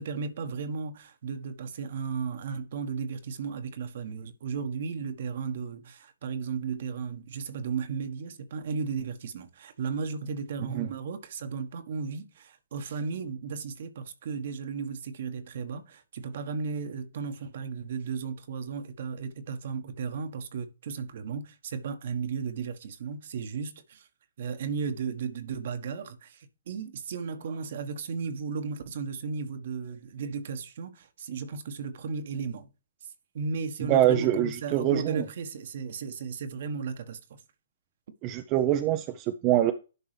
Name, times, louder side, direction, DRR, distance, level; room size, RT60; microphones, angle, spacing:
voice 1, 0.0-24.1 24.4-32.7 33.3-37.4, right 5 dB, 55° right, 1.3 m, -35 dB
voice 2, 33.9-35.2 38.2-39.7, right 12 dB, 30° right, 0.6 m, -24 dB
11.0 x 5.3 x 3.3 m
figure-of-eight pair, 130°, 0 cm